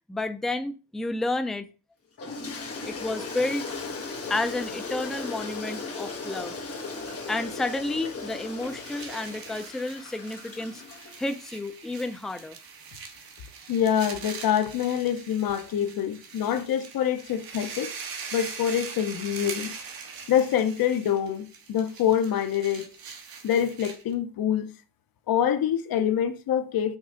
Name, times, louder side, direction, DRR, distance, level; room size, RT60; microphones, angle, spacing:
voice 1, 0.1-1.7 2.9-3.7 4.3-6.5 7.3-10.8 11.2-12.6, left 2 dB, ahead, 0.3 m, -31 dB
Toilet flush, 2.2-11.5, left 3 dB, 35° left, 1.7 m, -37 dB
sound 1, 8.3-24.1, right 5 dB, 55° right, 1.4 m, -42 dB
voice 2, 13.7-17.9 18.3-19.7 20.3-22.9 23.4-24.7 25.3-27.0, left 9 dB, 60° left, 0.8 m, -25 dB
5.6 x 3.6 x 4.9 m
cardioid pair, 155°, 41 cm